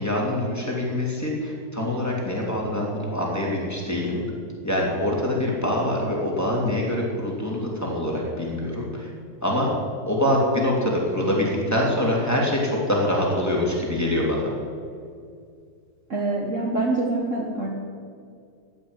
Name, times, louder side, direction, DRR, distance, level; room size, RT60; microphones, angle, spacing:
voice 1, 0.0-4.2 4.6-9.1 9.4-9.7 10.1-14.5, left 1 dB, 5° left, -3 dB, 2.4 m, -24 dB
voice 2, 16.1-17.7, right 2 dB, 60° right, -1 dB, 0.7 m, -25 dB
15.0 x 8.0 x 9.8 m, 2.3 s
omnidirectional pair, 3.6 m